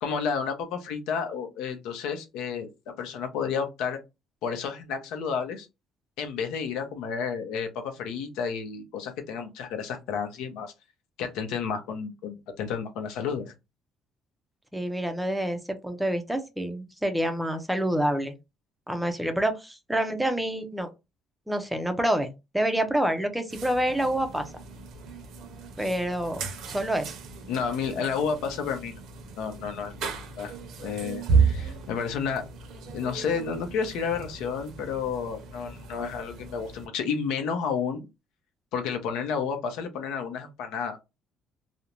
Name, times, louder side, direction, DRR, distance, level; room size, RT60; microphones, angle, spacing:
voice 1, 0.0-4.0 4.4-5.7 6.2-10.7 11.2-13.5 27.5-29.0 29.4-30.5 30.8-32.4 32.9-38.1 38.7-41.0, left 6 dB, 85° left, 6 dB, 0.6 m, -31 dB
voice 2, 14.7-18.3 18.9-20.9 21.5-24.5 25.8-26.4 26.7-27.1, right 1 dB, 5° right, 7 dB, 0.4 m, -27 dB
sound 1, 23.5-36.9, right 5 dB, 65° right, 0.6 m, -33 dB
2.5 x 2.1 x 2.9 m, 0.24 s
cardioid pair, 150°, 0 cm